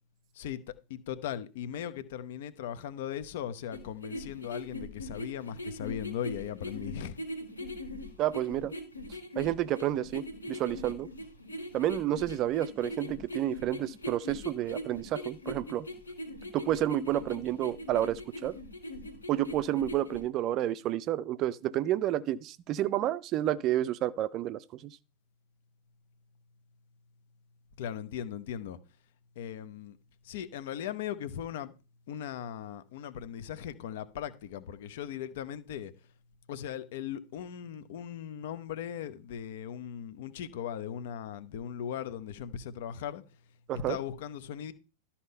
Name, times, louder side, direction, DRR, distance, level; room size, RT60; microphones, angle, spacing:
voice 1, 1.1-7.1 27.8-28.8 29.4-29.9 30.3-31.7 32.1-35.9 36.5-43.2 43.9-44.7, left 9 dB, 55° left, 0.8 m, -38 dB
sound 1, 3.7-20.2, left 1 dB, 80° left, 2.2 m, -41 dB
voice 2, 8.2-8.7 9.4-11.1 11.7-15.9 16.5-18.5 19.3-25.0 43.7-44.0, right 12 dB, 35° right, 0.5 m, -30 dB
12.5 x 4.3 x 5.4 m
figure-of-eight pair, 90°, 0 cm